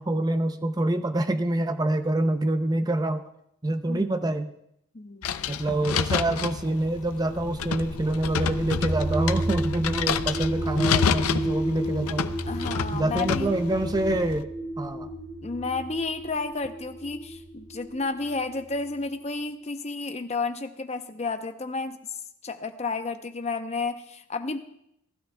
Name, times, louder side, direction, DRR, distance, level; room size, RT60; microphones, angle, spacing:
voice 1, 0.0-3.2 3.6-4.5 5.5-12.3 12.9-14.5 14.8-15.1, right 1 dB, 15° right, 9 dB, 0.5 m, -26 dB
voice 2, 4.9-5.6 12.5-13.5 15.4-22.0 22.4-24.6, left 3 dB, 30° left, 8 dB, 0.6 m, -32 dB
sound 1, 5.2-14.4, left 7 dB, 75° left, 0.5 m, -29 dB
sound 2, 7.2-19.0, right 1 dB, 85° right, 2.3 m, -33 dB
19.5 x 12.5 x 2.2 m, 0.75 s
head